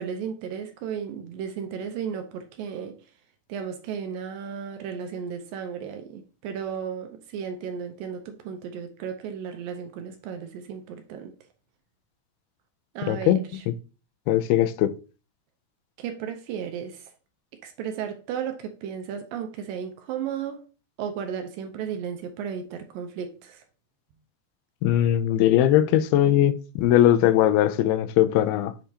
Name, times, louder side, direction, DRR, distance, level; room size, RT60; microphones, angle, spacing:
voice 1, 0.0-3.0 3.5-11.3 13.0-13.6 16.0-17.1 17.6-20.7 21.0-23.6, right 7 dB, 75° right, 2.3 m, -34 dB
voice 2, 13.1-13.4 14.3-14.9 24.8-28.7, left 12 dB, 85° left, 2.5 m, -20 dB
8.0 x 4.9 x 2.8 m
omnidirectional pair, 4.4 m